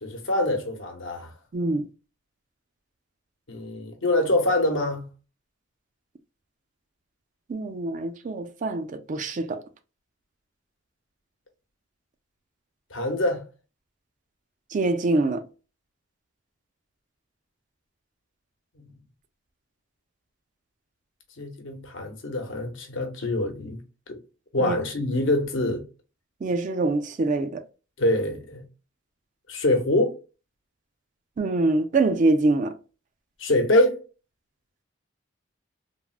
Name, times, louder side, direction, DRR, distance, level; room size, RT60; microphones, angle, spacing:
voice 1, 0.0-1.3 3.5-5.1 12.9-13.4 18.8-18.9 21.4-23.8 24.1-24.2 24.5-25.8 28.0-28.6 29.5-30.1 33.4-34.0, left 1 dB, 70° left, 0.9 m, -25 dB
voice 2, 1.5-1.9 7.5-9.6 14.7-15.5 24.6-24.8 26.4-27.6 31.4-32.7, right 2 dB, 40° right, 0.4 m, -24 dB
3.5 x 2.1 x 2.3 m
head